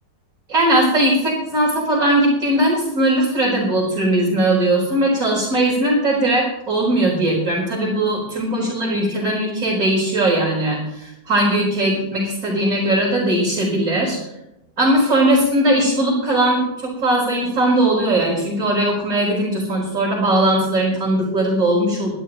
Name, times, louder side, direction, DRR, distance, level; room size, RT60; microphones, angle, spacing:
voice 1, 0.5-14.2 14.8-22.1, right 1 dB, 50° right, -7 dB, 4.9 m, -19 dB
24.0 x 12.0 x 3.0 m, 0.87 s
omnidirectional pair, 1.8 m